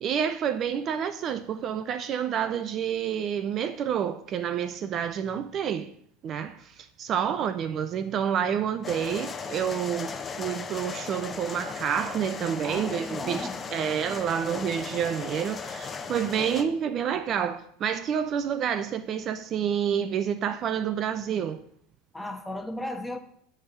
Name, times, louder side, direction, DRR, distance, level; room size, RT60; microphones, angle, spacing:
voice 1, 0.0-5.9 6.2-21.6, right 8 dB, 45° right, 0.5 m, -29 dB
sound 1, 8.8-16.6, left 5 dB, 25° left, 0.9 m, -37 dB
voice 2, 12.6-13.7 22.1-23.2, left 1 dB, 5° left, 1.1 m, -35 dB
9.9 x 3.6 x 7.1 m
hypercardioid pair, 85°, 0 cm